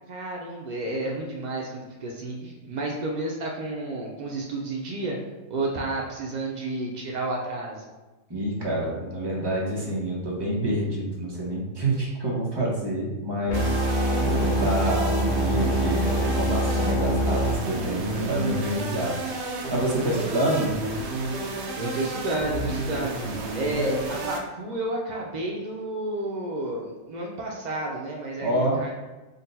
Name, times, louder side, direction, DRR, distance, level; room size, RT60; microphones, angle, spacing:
voice 1, 0.1-5.2 5.5-7.8 21.8-28.9, right 2 dB, 85° right, -1 dB, 0.3 m, -31 dB
voice 2, 8.3-13.7 14.2-19.2 19.7-20.7 28.4-28.8, right 1 dB, 25° right, -4 dB, 0.7 m, -27 dB
sound 1, 13.5-17.5, right 1 dB, 80° left, 1.1 m, -25 dB
sound 2, 13.5-24.4, right 2 dB, 65° right, 0.8 m, -31 dB
3.9 x 2.2 x 3.9 m, 1.1 s
omnidirectional pair, 1.4 m